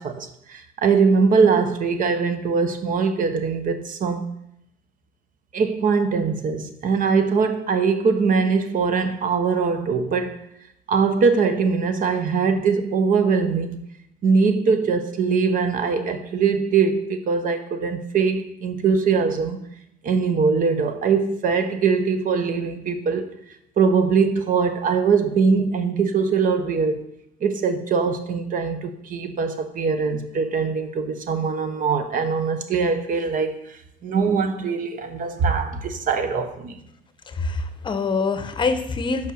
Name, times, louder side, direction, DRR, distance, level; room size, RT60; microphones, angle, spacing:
voice 1, 0.0-4.3 5.5-10.4 10.9-13.8 14.2-19.6 20.0-23.3 23.8-27.0 27.4-33.6 34.0-36.8, right 5 dB, 55° right, 0.9 m, -22 dB
voice 2, 37.3-39.3, left 4 dB, 30° left, 0.8 m, -25 dB
5.5 x 5.1 x 6.4 m
cardioid pair, 110°, 17 cm